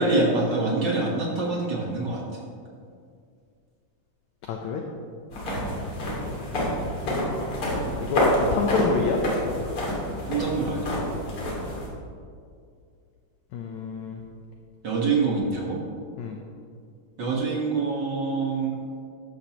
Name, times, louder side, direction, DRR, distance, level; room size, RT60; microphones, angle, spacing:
voice 1, 0.0-2.2 5.4-5.7 10.3-11.0 14.8-15.8 17.2-18.7, right 3 dB, 60° right, -3 dB, 1.1 m, -25 dB
voice 2, 4.5-4.8 8.1-9.2 13.5-14.2 16.2-16.4, left 4 dB, 75° left, 2 dB, 1.7 m, -27 dB
sound 1, 5.3-11.9, left 1 dB, 40° left, 2.9 m, -28 dB
14.0 x 11.5 x 3.0 m, 2.3 s
omnidirectional pair, 4.1 m